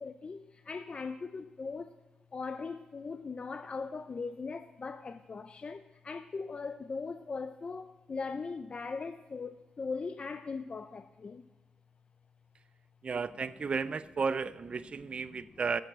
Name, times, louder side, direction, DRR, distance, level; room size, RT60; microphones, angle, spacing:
voice 1, 0.0-1.9 2.3-11.5 15.3-15.4, left 4 dB, 40° left, 0.4 m, -39 dB
voice 2, 13.0-15.8, right 5 dB, 45° right, 0.4 m, -33 dB
14.0 x 6.9 x 7.3 m
wide cardioid pair, 110°, 3 cm